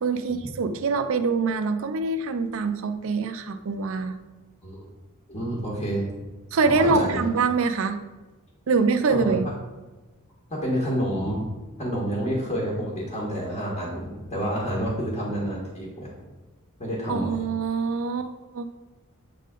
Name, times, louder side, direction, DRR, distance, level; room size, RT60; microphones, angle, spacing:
voice 1, 0.0-4.2 6.5-8.0 8.7-9.4 17.1-18.7, right 4 dB, 65° right, 8 dB, 0.4 m, -24 dB
voice 2, 5.3-6.0 6.6-7.3 9.1-9.4 10.5-11.4 11.8-16.1 16.8-17.3, equal, 30° left, -4 dB, 1.5 m, -28 dB
8.3 x 3.7 x 3.7 m, 1.2 s
head